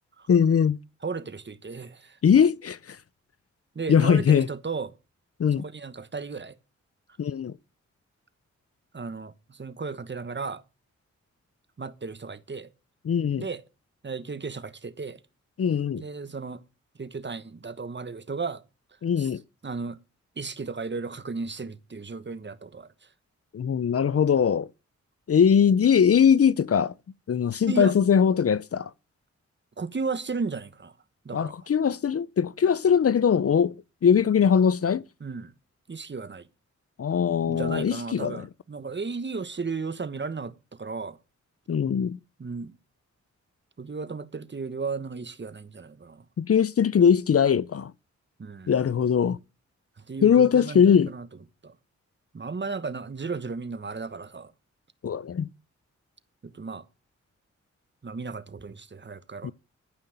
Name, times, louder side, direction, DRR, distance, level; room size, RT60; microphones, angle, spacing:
voice 1, 0.3-0.8 2.2-3.0 3.9-4.5 5.4-5.6 7.2-7.5 13.1-13.5 15.6-16.0 19.0-19.4 23.5-24.7 25.3-26.9 27.3-28.9 31.3-33.7 34.0-35.0 37.0-38.5 41.7-42.2 46.4-47.9 48.7-49.4 50.2-51.1 55.0-55.5 59.4-59.5, left 7 dB, 50° left, 0.6 m, -21 dB
voice 2, 1.0-2.2 3.7-4.9 5.5-6.6 8.9-10.6 11.8-12.7 13.4-13.6 14.0-15.2 16.0-16.6 17.0-18.6 19.2-19.3 19.6-20.0 20.4-22.9 27.7-27.9 29.8-31.0 31.2-31.5 35.2-35.5 35.9-36.5 37.5-41.2 42.4-42.7 43.8-46.3 48.4-48.7 50.1-51.3 51.6-51.8 52.3-54.5 56.4-56.8 58.0-59.5, right 4 dB, 40° right, 1.2 m, -34 dB
14.5 x 5.8 x 8.8 m
cardioid pair, 65°, 29 cm